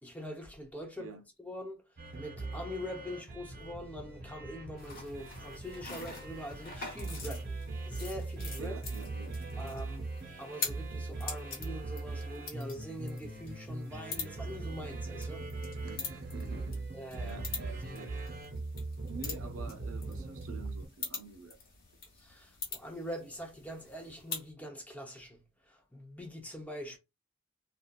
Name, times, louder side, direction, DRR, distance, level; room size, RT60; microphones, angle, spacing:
voice 1, 0.0-1.1 1.4-1.8 2.1-7.5 7.9-8.8 9.6-10.1 10.4-15.5 16.9-17.5 22.2-27.0, equal, 10° left, 0.7 m, -43 dB
sound 1, 2.0-20.9, right 2 dB, 45° right, 0.8 m, -40 dB
sound 2, 4.8-24.5, left 5 dB, 45° left, 1.2 m, -45 dB
voice 2, 8.6-9.4 15.8-16.9 17.2-18.1 19.1-21.6, right 4 dB, 75° right, 0.5 m, -47 dB
2.9 x 2.4 x 2.4 m
head